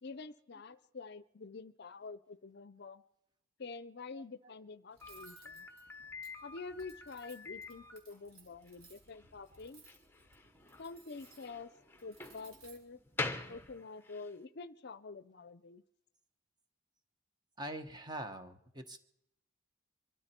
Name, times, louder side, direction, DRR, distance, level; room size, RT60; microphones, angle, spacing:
voice 1, 0.0-3.0 3.6-5.7 6.4-9.8 10.8-11.7 12.0-13.0 13.5-15.8, left 4 dB, 50° left, 0.6 m, -47 dB
Cutlery silverware, 4.9-13.7, right 3 dB, 85° right, 3.6 m, -62 dB
Slam, 5.0-14.3, left 3 dB, 10° left, 1.0 m, -46 dB
voice 2, 17.6-19.0, right 1 dB, 20° right, 1.1 m, -43 dB
24.0 x 13.0 x 4.4 m
head